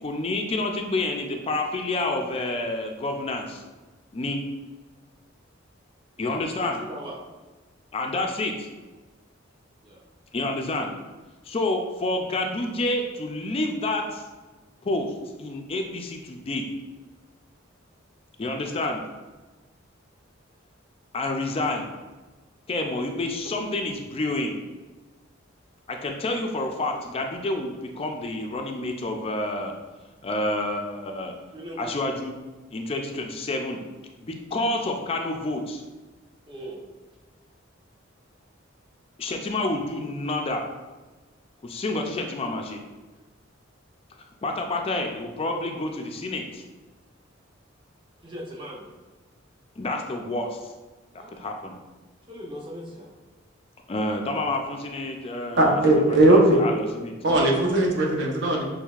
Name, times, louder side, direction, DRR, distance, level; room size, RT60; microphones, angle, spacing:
voice 1, 0.0-3.6 4.1-4.4 6.2-6.8 7.9-8.7 10.3-10.9 11.4-14.2 14.8-15.1 15.4-16.6 18.4-19.0 21.1-21.9 22.7-24.6 25.9-29.7 30.2-31.3 31.8-32.4 32.7-33.8 34.2-35.8 39.2-40.6 41.6-42.8 44.4-46.6 49.8-50.7 51.1-51.7 53.9-57.2, left 2 dB, 30° left, 3 dB, 0.4 m, -29 dB
voice 2, 6.2-7.2 9.8-10.0 31.5-31.9 36.5-36.8 48.2-48.9 51.2-51.3 52.3-53.1, equal, 25° right, -2 dB, 0.8 m, -39 dB
voice 3, 55.6-56.6 57.2-58.6, right 1 dB, 65° right, 0 dB, 0.8 m, -18 dB
6.2 x 3.2 x 2.4 m, 1.2 s
head